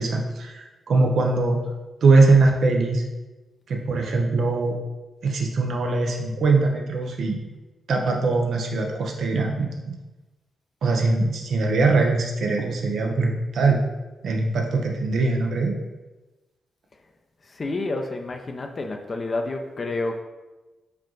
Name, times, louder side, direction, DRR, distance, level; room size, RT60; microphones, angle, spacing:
voice 1, 0.0-1.6 2.0-3.0 3.7-4.8 5.2-7.5 7.9-9.9 10.8-13.8 14.2-15.7, right 3 dB, 70° right, 2 dB, 0.7 m, -21 dB
voice 2, 17.4-20.2, left 2 dB, 45° left, 4 dB, 0.5 m, -29 dB
4.5 x 2.4 x 3.8 m, 1.1 s
supercardioid pair, 45°, 0 cm